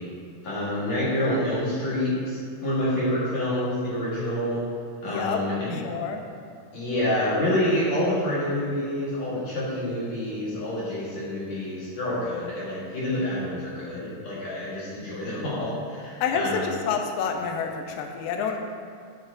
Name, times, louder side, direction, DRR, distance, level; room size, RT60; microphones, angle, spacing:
voice 1, 0.4-4.6 5.0-5.8 6.7-16.7, left 1 dB, 55° left, -9 dB, 2.2 m, -27 dB
voice 2, 5.1-5.4 5.7-6.2 16.2-18.6, left 6 dB, 85° left, 3 dB, 2.0 m, -28 dB
11.0 x 7.5 x 2.6 m, 2.2 s
omnidirectional pair, 4.8 m